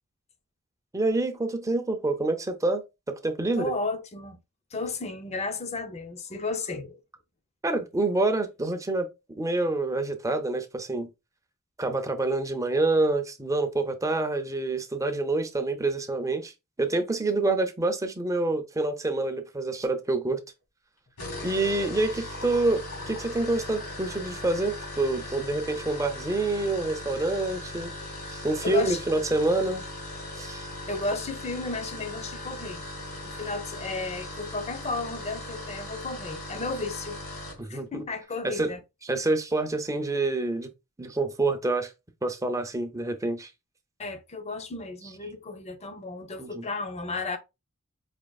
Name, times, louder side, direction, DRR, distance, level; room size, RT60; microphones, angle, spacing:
voice 1, 0.9-3.7 7.6-11.1 11.8-16.5 16.8-20.4 21.4-27.9 28.4-29.8 30.4-30.7 37.6-38.0 38.4-38.7 39.0-40.7 41.0-41.9 42.2-43.5 46.4-46.7, right 2 dB, 15° right, 0.6 m, -27 dB
voice 2, 3.6-4.4 4.7-7.0 28.6-29.0 30.9-32.8 33.2-37.2 37.7-38.8 44.0-47.4, left 3 dB, 30° left, 0.6 m, -33 dB
sound 1, 21.1-37.6, left 1 dB, 85° left, 2.2 m, -39 dB
5.1 x 2.8 x 2.3 m
head